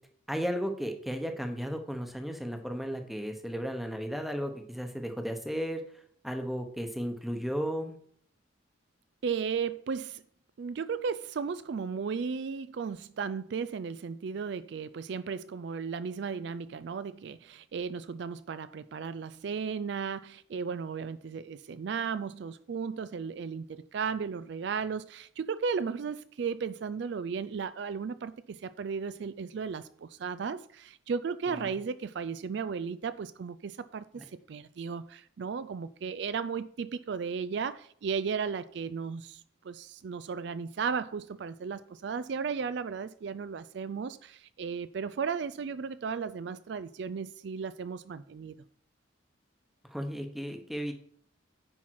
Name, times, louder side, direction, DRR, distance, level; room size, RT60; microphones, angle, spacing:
voice 1, 0.3-5.8 6.2-7.9 31.5-31.8 34.2-34.3 49.8-50.9, equal, ahead, 0.9 m, -34 dB
voice 2, 9.2-10.2 10.6-48.6, right 5 dB, 60° right, 0.3 m, -35 dB
10.0 x 5.7 x 4.7 m
head